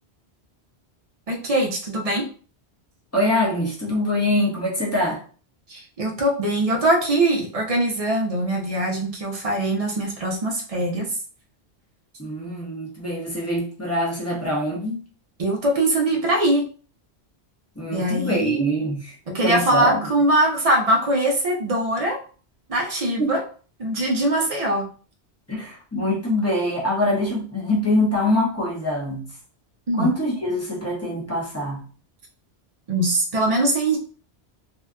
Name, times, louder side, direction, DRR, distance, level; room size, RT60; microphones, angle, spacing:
voice 1, 1.3-2.3 5.7-11.1 15.4-16.7 17.9-18.6 19.3-22.2 22.7-23.4 23.8-24.9 29.9-30.1 32.9-34.0, right 1 dB, 40° right, 1 dB, 0.6 m, -22 dB
voice 2, 3.1-5.2 12.2-15.0 17.8-19.2 19.4-20.1 22.8-22.9 23.2-23.4 25.5-29.3 30.0-31.8, left 1 dB, 15° left, -3 dB, 0.6 m, -24 dB
2.7 x 2.3 x 2.2 m, 0.40 s
omnidirectional pair, 1.1 m